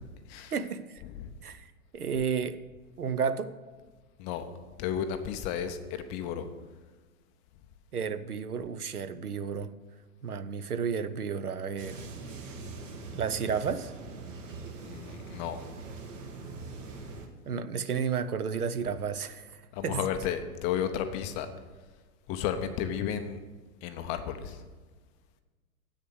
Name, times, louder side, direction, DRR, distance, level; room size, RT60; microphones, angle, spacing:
voice 1, 0.5-1.0 1.4-1.7 1.9-2.6 3.0-3.5 7.9-9.7 10.2-12.1 13.1-13.9 17.5-20.0, right 6 dB, 85° right, 0.7 m, -32 dB
voice 2, 1.0-1.3 4.2-4.5 4.8-6.5 14.8-15.6 19.7-21.5 22.3-23.4 23.8-24.7, left 9 dB, 15° left, 0.4 m, -33 dB
sound 1, 11.8-17.3, right 3 dB, 60° right, 1.5 m, -42 dB
8.1 x 6.6 x 7.8 m
figure-of-eight pair, 105°, 44 cm